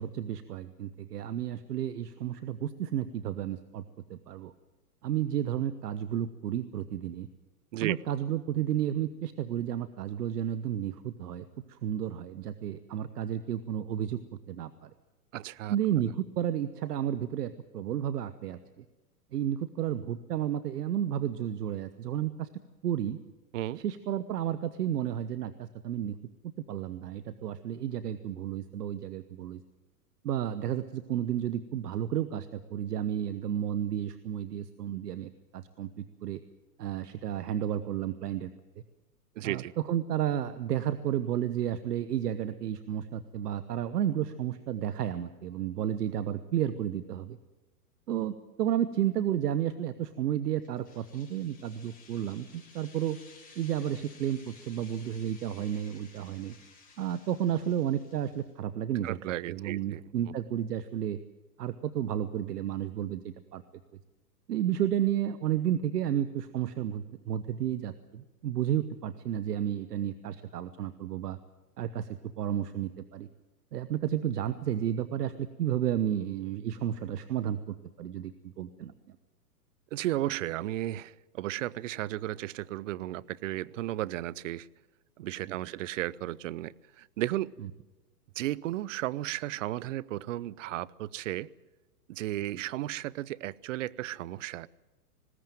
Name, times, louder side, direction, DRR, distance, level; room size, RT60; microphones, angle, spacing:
voice 1, 0.0-3.8 4.1-4.5 5.0-7.3 7.8-14.2 14.5-14.9 15.7-18.6 19.3-22.5 22.8-23.2 23.8-26.1 26.7-29.6 30.2-36.4 36.8-38.5 39.4-47.4 48.1-53.2 53.6-56.5 57.0-59.2 59.5-61.2 61.6-63.6 64.5-71.4 71.8-73.3 73.7-78.9, right 10 dB, 75° right, 1.1 m, -32 dB
voice 2, 15.3-15.8 23.5-23.8 39.4-39.7 59.0-60.3 79.9-84.7 85.2-87.5 88.4-91.5 92.1-94.7, right 15 dB, 55° right, 0.6 m, -34 dB
sound 1, 50.6-58.5, left 4 dB, 15° left, 5.7 m, -56 dB
20.0 x 17.0 x 9.1 m
hypercardioid pair, 135°, 48 cm